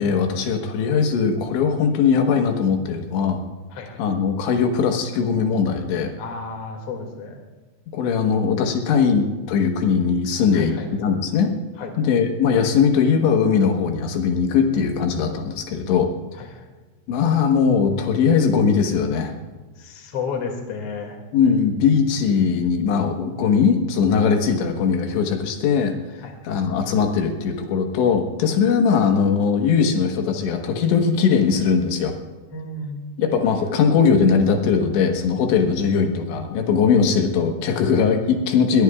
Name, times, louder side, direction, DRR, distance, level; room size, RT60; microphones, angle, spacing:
voice 1, 0.0-3.4 4.0-6.1 7.9-11.5 12.0-16.1 17.1-19.3 21.3-32.1 33.2-38.8, left 6 dB, 85° left, 4 dB, 3.6 m, -20 dB
voice 2, 6.2-7.4 10.5-10.9 11.8-11.9 16.4-16.5 19.8-21.2 26.2-26.4 32.5-33.2, left 4 dB, 40° left, 2 dB, 2.5 m, -32 dB
21.5 x 19.0 x 2.4 m, 1.3 s
omnidirectional pair, 5.1 m